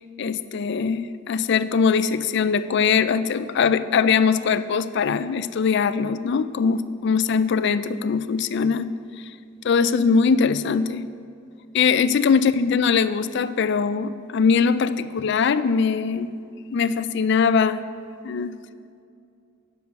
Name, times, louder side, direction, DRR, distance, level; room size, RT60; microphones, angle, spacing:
voice 1, 0.2-8.9 9.6-11.0 11.7-16.3 16.7-17.9 18.2-18.5, left 5 dB, 55° left, 13 dB, 0.4 m, -21 dB
9.5 x 7.0 x 6.6 m, 2.4 s
head